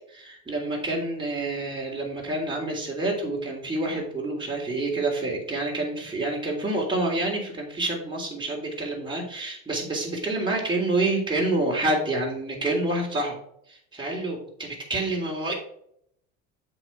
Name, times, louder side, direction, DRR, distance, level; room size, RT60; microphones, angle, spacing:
voice 1, 0.1-13.3 13.7-15.5, right 2 dB, 10° right, -3 dB, 3.4 m, -28 dB
7.9 x 5.8 x 4.6 m, 0.69 s
hypercardioid pair, 80°, 40 cm